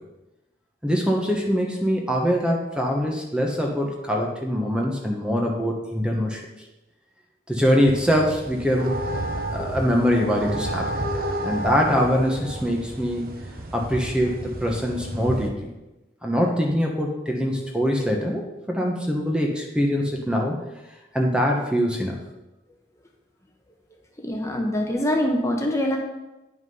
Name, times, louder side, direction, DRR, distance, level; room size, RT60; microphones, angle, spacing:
voice 1, 0.8-6.5 7.5-9.0 9.5-11.0 11.4-13.3 13.7-15.6 16.2-20.6 21.1-22.2, equal, 5° right, 0 dB, 1.1 m, -23 dB
sound 1, 7.8-15.5, right 1 dB, 55° right, 1.0 m, -31 dB
voice 2, 24.2-26.0, left 1 dB, 15° left, 1 dB, 1.1 m, -24 dB
9.6 x 6.0 x 5.5 m, 1.0 s
head